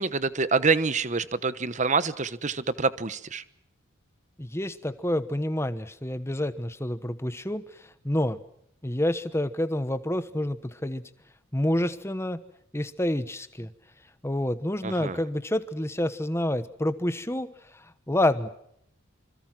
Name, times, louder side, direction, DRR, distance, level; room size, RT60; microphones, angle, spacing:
voice 1, 0.0-3.4 14.8-15.2, right 4 dB, 35° right, 15 dB, 1.0 m, -26 dB
voice 2, 4.4-8.4 8.8-11.0 11.5-12.4 12.7-13.7 14.2-18.5, left 1 dB, 10° left, 12 dB, 1.1 m, -28 dB
26.0 x 26.0 x 6.2 m, 0.71 s
head